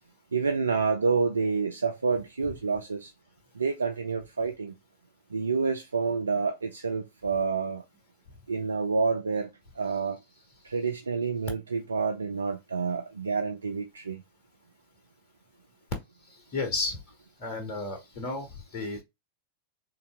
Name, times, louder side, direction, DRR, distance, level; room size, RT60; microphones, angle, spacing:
voice 1, 0.3-3.1 3.6-4.8 5.3-7.8 8.5-9.5 9.8-10.2 10.6-14.2, right 4 dB, 75° right, 0.3 m, -28 dB
voice 2, 16.5-17.0 17.4-19.0, left 3 dB, 40° left, 1.1 m, -32 dB
3.7 x 2.7 x 3.5 m
figure-of-eight pair, 90°, 0 cm